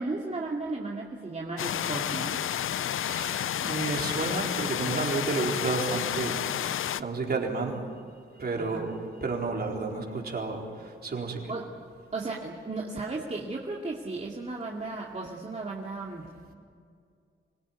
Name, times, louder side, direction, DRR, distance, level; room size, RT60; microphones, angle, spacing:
voice 1, 0.0-2.4 8.6-8.9 11.5-11.7 12.1-16.3, right 3 dB, 35° right, -2 dB, 2.4 m, -35 dB
sound 1, 1.6-7.0, left 10 dB, 75° left, 0.6 m, -30 dB
voice 2, 3.1-6.4 6.7-7.8 8.4-11.5, right 3 dB, 50° right, 0 dB, 4.2 m, -31 dB
26.0 x 18.0 x 9.5 m, 2.2 s
cardioid pair, 95°, 21 cm